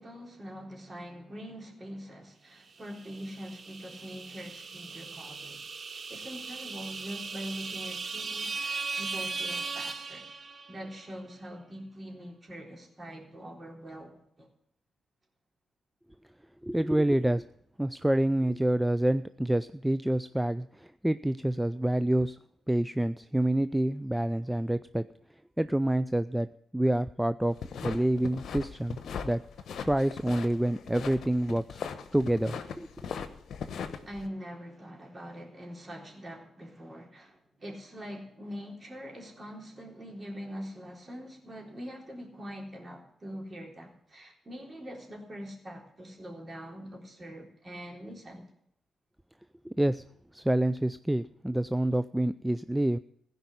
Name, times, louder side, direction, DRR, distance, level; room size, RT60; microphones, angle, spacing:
voice 1, 0.0-10.3 10.7-14.5 34.0-48.5, equal, 35° right, 0 dB, 3.8 m, -43 dB
sound 1, 2.9-10.9, right 4 dB, 50° right, 1.0 m, -38 dB
voice 2, 16.6-17.4 17.8-22.4 22.7-25.1 25.6-26.5 26.7-27.6 27.8-29.0 29.2-29.4 29.8-31.8 32.1-32.9 49.6-50.0 50.3-53.0, right 1 dB, 10° right, 14 dB, 0.4 m, -27 dB
sound 2, 27.5-34.3, left 7 dB, 65° left, 1.0 m, -39 dB
16.0 x 5.4 x 9.7 m, 0.71 s
hypercardioid pair, 40°, 0 cm